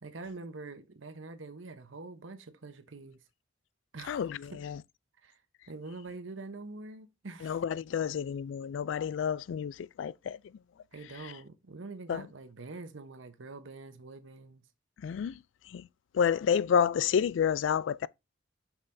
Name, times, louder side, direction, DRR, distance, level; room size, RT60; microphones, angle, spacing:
voice 1, 0.0-3.2 3.9-4.2 4.5-4.6 5.2-5.4 5.7-7.6 10.9-14.6, right 3 dB, 90° right, 0.9 m, -45 dB
voice 2, 4.1-4.8 7.4-10.4 11.2-11.3 12.1-12.2 15.0-15.4 15.7-15.9 16.1-18.1, left 7 dB, 70° left, 0.3 m, -29 dB
7.0 x 5.6 x 2.6 m
head